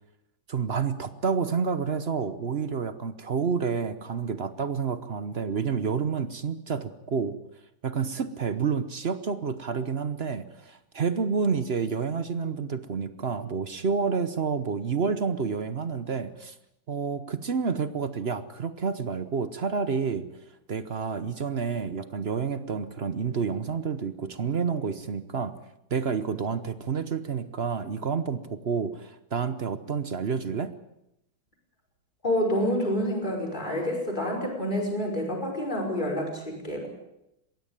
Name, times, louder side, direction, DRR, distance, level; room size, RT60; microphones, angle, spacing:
voice 1, 0.5-7.4 7.8-16.5 16.9-20.3 20.7-25.5 25.9-30.7, right 5 dB, 50° right, 12 dB, 0.8 m, -29 dB
voice 2, 32.2-36.9, equal, 20° left, 0 dB, 5.7 m, -28 dB
22.0 x 16.5 x 9.0 m, 0.86 s
omnidirectional pair, 2.2 m